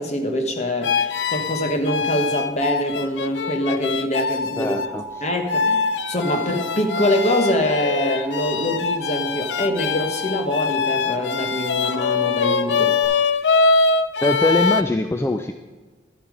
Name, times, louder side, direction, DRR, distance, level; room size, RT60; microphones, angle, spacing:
voice 1, 0.0-4.8 5.2-13.0, left 1 dB, 40° left, 4 dB, 1.2 m, -24 dB
sound 1, 0.8-4.9 5.5-14.8, left 4 dB, 80° left, 0.4 m, -23 dB
voice 2, 4.6-5.3 14.2-15.5, left 1 dB, 15° left, 6 dB, 0.4 m, -22 dB
Alarm, 4.9-13.1, right 4 dB, 30° right, 2.3 m, -36 dB
12.0 x 7.0 x 5.0 m, 1.4 s
head